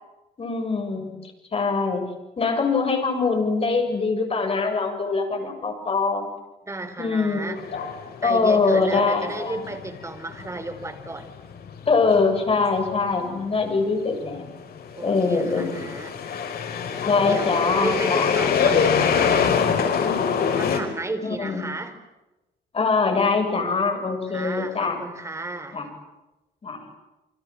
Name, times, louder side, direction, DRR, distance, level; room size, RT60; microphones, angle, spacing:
voice 1, 0.4-1.1 1.5-2.0 2.4-6.3 7.0-7.6 8.2-9.6 11.9-14.5 15.0-15.9 17.0-18.4 21.2-21.7 22.7-25.0 25.7-25.9 26.6-26.8, left 4 dB, 35° left, 4 dB, 7.8 m, -23 dB
voice 2, 6.7-7.6 8.2-11.3 14.9-16.2 17.3-20.0 20.5-21.9 24.3-25.9, right 2 dB, 15° right, 8 dB, 4.2 m, -33 dB
sound 1, 7.6-8.4 8.9-20.8, left 6 dB, 60° left, 5.9 m, -24 dB
29.0 x 25.5 x 7.8 m, 1.0 s
cardioid pair, 135°, 17 cm